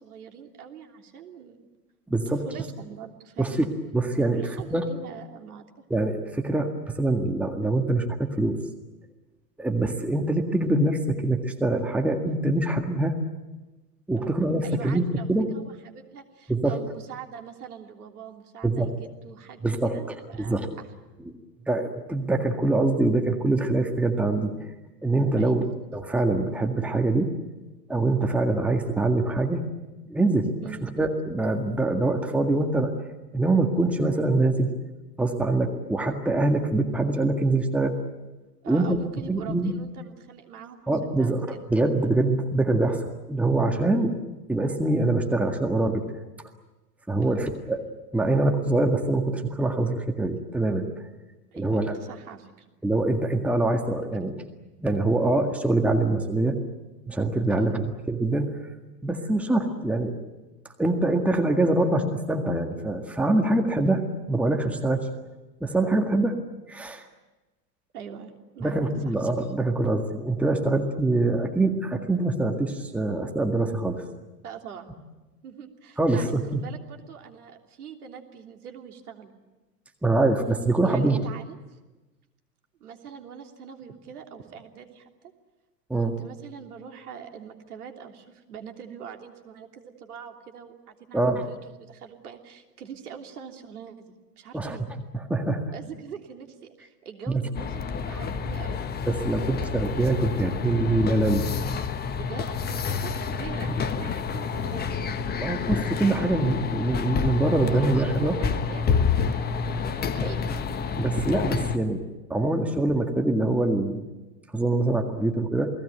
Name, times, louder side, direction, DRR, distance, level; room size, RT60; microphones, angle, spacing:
voice 1, 0.0-1.7 2.4-3.6 4.0-5.7 14.2-20.9 25.4-25.7 30.6-30.9 38.6-41.6 47.2-47.5 51.5-52.6 57.5-57.7 67.9-68.8 69.0-69.1 74.4-74.9 75.4-79.3 80.8-81.8 82.8-85.1 85.9-94.9 95.7-98.8 102.1-104.9 107.6-107.9 108.1-109.7 110.1-110.4, right 7 dB, 60° right, 3 dB, 3.3 m, -43 dB
voice 2, 2.1-2.4 3.4-3.7 3.9-4.9 5.9-8.6 9.6-13.1 14.1-15.5 16.5-16.8 18.6-18.9 19.6-20.0 20.4-20.7 21.3-21.4 21.7-24.7 25.0-25.7 25.9-27.3 27.9-29.6 30.1-30.5 30.8-32.9 33.3-34.7 35.2-38.0 38.7-39.0 39.3-39.7 40.9-44.1 44.5-46.0 47.1-47.8 48.1-50.9 51.5-51.9 52.8-54.4 54.8-56.6 57.1-58.6 59.0-60.2 60.8-65.1 65.6-66.4 66.7-67.0 68.6-74.0 76.0-76.6 80.0-81.2 85.9-86.1 91.1-91.4 94.5-94.8 95.1-95.6 97.3-97.4 99.1-101.5 103.7-103.8 105.4-108.4 110.2-110.3 111.0-114.0 114.5-115.7, right 2 dB, 5° right, 4 dB, 1.8 m, -24 dB
sound 1, 97.5-111.8, left 6 dB, 20° left, 1.3 m, -28 dB
28.5 x 19.5 x 9.1 m, 1.1 s
figure-of-eight pair, 90°, 50 cm